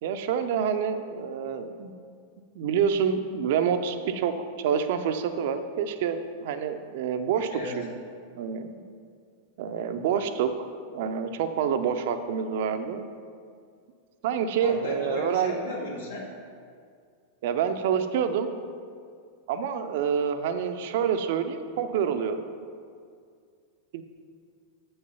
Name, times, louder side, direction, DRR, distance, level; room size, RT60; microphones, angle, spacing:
voice 1, 0.0-1.9 2.5-7.9 8.3-8.8 9.6-10.7 10.9-13.0 14.2-15.7 17.4-18.5 19.5-22.5 23.9-24.0, right 7 dB, 50° right, 9 dB, 0.5 m, -27 dB
voice 2, 14.6-16.2, left 2 dB, 75° left, -5 dB, 1.7 m, -35 dB
7.9 x 5.5 x 5.5 m, 2.2 s
figure-of-eight pair, 90°, 0 cm